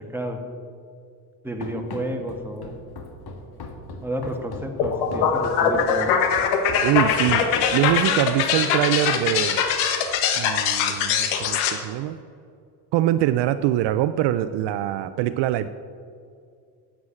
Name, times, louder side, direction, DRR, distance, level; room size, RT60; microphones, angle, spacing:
voice 1, 1.4-2.7 4.0-6.1, right 1 dB, 5° right, 3 dB, 2.0 m, -31 dB
Run, 1.6-8.2, left 3 dB, 50° left, 1.9 m, -38 dB
sound 1, 4.8-11.7, left 7 dB, 80° left, 1.3 m, -22 dB
voice 2, 6.8-7.4 7.7-9.6 10.4-12.2 12.9-15.7, right 13 dB, 65° right, 13 dB, 0.6 m, -23 dB
9.4 x 7.5 x 8.5 m, 2.3 s
hypercardioid pair, 60°, 48 cm